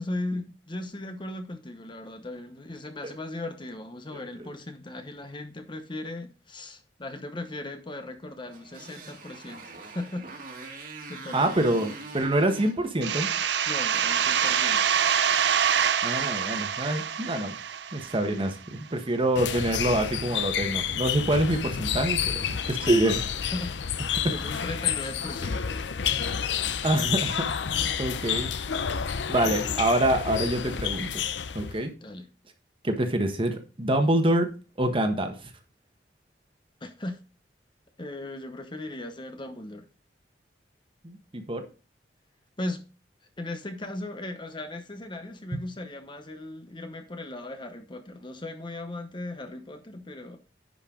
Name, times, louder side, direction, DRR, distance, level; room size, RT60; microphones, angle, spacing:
voice 1, 0.0-10.3 11.1-11.7 13.7-14.9 23.5-25.7 29.5-29.8 32.0-32.3 36.8-37.2 38.0-39.9 42.6-42.8 43.4-50.4, left 2 dB, 30° left, 1.0 m, -37 dB
Motorcycle, 8.4-15.0, right 3 dB, 55° right, 2.0 m, -44 dB
voice 2, 11.3-13.3 16.0-17.5 17.9-23.3 26.8-27.6 28.0-28.5 29.3-31.2 31.5-31.9 32.8-34.5 34.8-35.5 41.0-41.7, right 1 dB, 30° right, 1.3 m, -26 dB
sound 1, 13.0-18.5, right 8 dB, 75° right, 0.6 m, -25 dB
sound 2, 19.4-31.8, left 8 dB, 85° left, 0.6 m, -29 dB
10.5 x 5.6 x 3.8 m
head